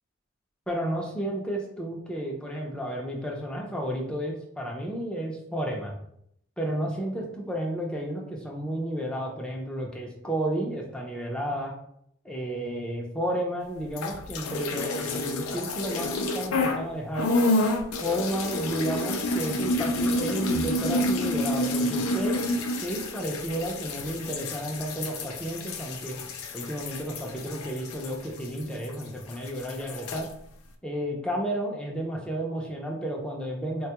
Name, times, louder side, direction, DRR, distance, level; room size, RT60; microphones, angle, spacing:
voice 1, 0.7-6.0 6.6-11.7 12.2-17.3 18.0-22.5 22.8-26.3 26.5-30.3 30.8-33.9, right 1 dB, 5° left, -1 dB, 0.5 m, -32 dB
sound 1, 13.9-16.8 17.1-29.0 29.3-30.3, left 1 dB, 90° left, 0.4 m, -29 dB
4.0 x 2.2 x 2.8 m, 0.72 s
head